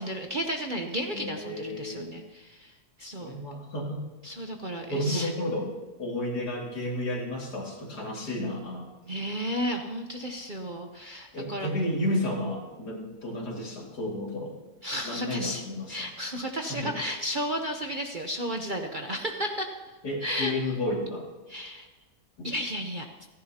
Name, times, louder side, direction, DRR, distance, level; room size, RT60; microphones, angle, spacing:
voice 1, 0.0-2.7 3.0-3.3 4.2-5.3 9.1-11.7 14.8-19.7 20.2-20.5 21.5-21.9 22.4-23.1, equal, 40° right, 3 dB, 0.8 m, -33 dB
voice 2, 1.1-2.1 3.0-4.0 4.9-5.7 6.0-8.9 11.3-14.6 15.0-16.0 16.6-16.9 20.0-21.3 22.4-22.5, left 1 dB, 75° left, -2 dB, 2.9 m, -32 dB
29.0 x 10.5 x 2.9 m, 1.2 s
omnidirectional pair, 1.7 m